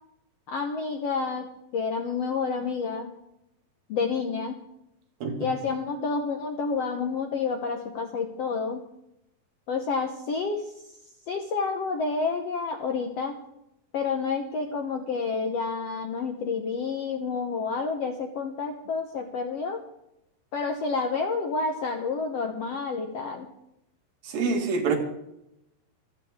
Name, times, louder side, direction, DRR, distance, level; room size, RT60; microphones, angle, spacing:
voice 1, 0.5-1.5 1.7-3.1 3.9-4.6 5.4-8.8 9.7-10.6 11.3-13.4 13.9-19.8 20.5-23.5, left 4 dB, 70° left, 4 dB, 1.5 m, -29 dB
voice 2, 24.3-25.0, right 4 dB, 75° right, 3 dB, 3.7 m, -25 dB
26.0 x 9.4 x 3.7 m, 0.84 s
omnidirectional pair, 4.2 m